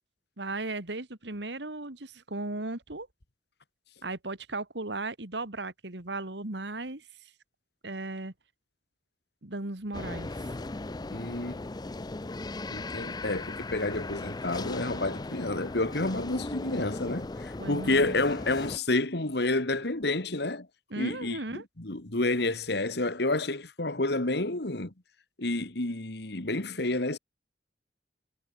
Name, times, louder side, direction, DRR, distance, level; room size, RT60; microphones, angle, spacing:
voice 1, 0.4-3.1 4.0-7.3 7.8-8.3 9.4-10.5 17.6-18.2 20.9-21.6, right 2 dB, 70° right, 2.2 m, -36 dB
sound 1, 9.9-18.8, left 2 dB, 20° left, 0.5 m, -37 dB
voice 2, 11.1-11.6 12.7-20.7 21.0-24.9 25.4-27.2, left 2 dB, 65° left, 2.0 m, -29 dB
head